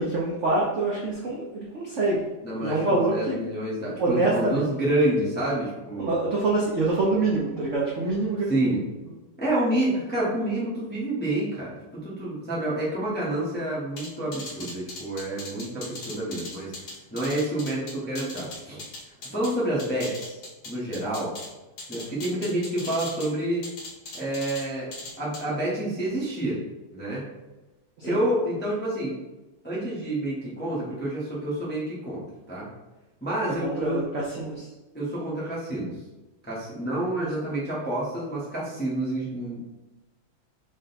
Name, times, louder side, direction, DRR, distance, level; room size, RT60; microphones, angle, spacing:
voice 1, 0.0-2.3 2.6-3.4 4.0-4.7 6.0-8.6 28.0-28.2 33.6-34.7 37.2-37.3, right 2 dB, 70° right, -4 dB, 0.7 m, -25 dB
voice 2, 2.4-6.1 8.5-8.8 9.4-16.7 17.1-18.8 19.3-20.4 20.6-21.3 21.9-23.6 24.1-24.9 25.2-26.6 26.9-27.3 28.0-29.2 29.6-32.7 33.2-34.0 34.9-35.9 36.5-39.6, right 1 dB, 10° left, -7 dB, 0.5 m, -28 dB
sound 1, 14.0-19.5 19.8-21.5 21.8-23.3 23.6-24.6 24.9-25.4, left 2 dB, 60° left, 1.4 m, -39 dB
4.9 x 2.2 x 4.0 m, 1.1 s
omnidirectional pair, 2.2 m